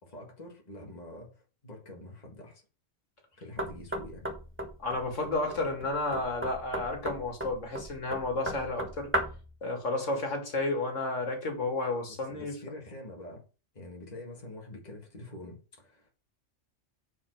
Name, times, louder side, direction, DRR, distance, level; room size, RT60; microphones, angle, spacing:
voice 1, 0.0-2.6 3.4-4.3 12.1-13.4 13.7-16.1, left 1 dB, 35° left, 1.9 m, -46 dB
Knock, 3.6-9.5, equal, 10° right, 1.3 m, -36 dB
voice 2, 4.8-9.1 9.6-12.6, left 2 dB, 85° left, 2.2 m, -32 dB
7.2 x 4.8 x 4.5 m
omnidirectional pair, 1.2 m